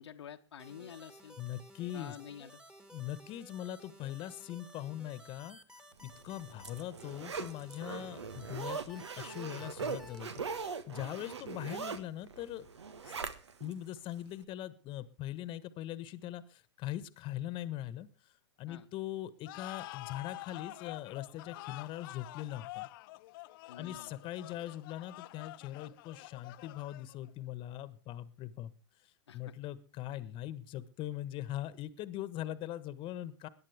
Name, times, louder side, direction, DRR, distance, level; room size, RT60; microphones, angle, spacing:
voice 1, 0.0-1.4 1.9-2.6 18.7-18.9 23.7-24.2 29.3-29.5, left 9 dB, 75° left, 5 dB, 1.1 m, -49 dB
sound 1, 0.6-10.4, equal, 5° right, 1.8 m, -55 dB
voice 2, 1.4-2.1 2.9-5.6 6.0-12.7 13.0-13.1 13.6-18.1 18.6-22.9 23.8-28.7 29.0-33.5, left 13 dB, 35° left, 16 dB, 1.3 m, -41 dB
Zipper (clothing), 6.1-13.7 14.2-14.3, right 5 dB, 80° right, 1.5 m, -41 dB
sound 2, 19.4-27.3, left 20 dB, 50° left, 0.6 m, -47 dB
22.0 x 10.5 x 3.5 m, 0.33 s
hypercardioid pair, 105°, 14 cm